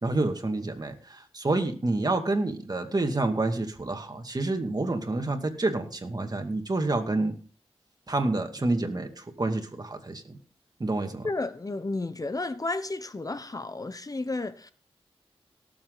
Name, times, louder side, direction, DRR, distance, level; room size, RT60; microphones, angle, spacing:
voice 1, 0.0-7.3 8.1-10.4 10.8-11.3, right 2 dB, 40° right, 2.4 m, -28 dB
voice 2, 11.2-14.7, left 2 dB, 35° left, 0.8 m, -32 dB
18.5 x 7.5 x 4.0 m
cardioid pair, 60°, 11 cm